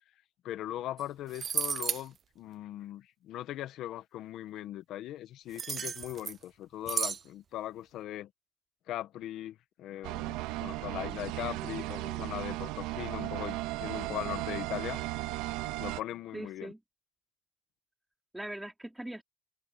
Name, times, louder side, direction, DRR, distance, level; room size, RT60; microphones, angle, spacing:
voice 1, 0.4-8.3 8.9-15.0 15.6-16.7, left 13 dB, 50° left, 1.5 m, -39 dB
sound 1, 1.0-1.1 1.3-2.0 5.5-6.4 6.9-7.2, right 7 dB, 30° right, 0.7 m, -33 dB
sound 2, 10.0-16.0, right 18 dB, 70° right, 2.1 m, -36 dB
voice 2, 11.5-12.3 16.3-16.8 18.3-19.2, right 1 dB, 5° right, 3.4 m, -42 dB
open air
cardioid pair, 135°, 0 cm